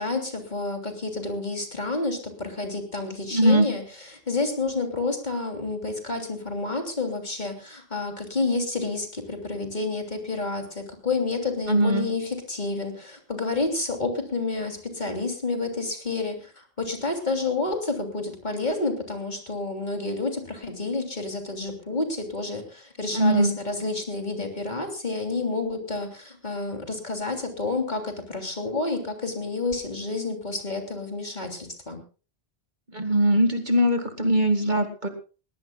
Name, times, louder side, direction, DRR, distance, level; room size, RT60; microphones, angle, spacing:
voice 1, 0.0-3.8 4.1-32.0, left 3 dB, 45° left, 4 dB, 3.3 m, -29 dB
voice 2, 3.3-3.7 11.7-12.1 23.1-23.5 32.9-35.1, right 1 dB, 45° right, 7 dB, 2.2 m, -21 dB
21.0 x 18.0 x 2.4 m, 0.35 s
omnidirectional pair, 1.1 m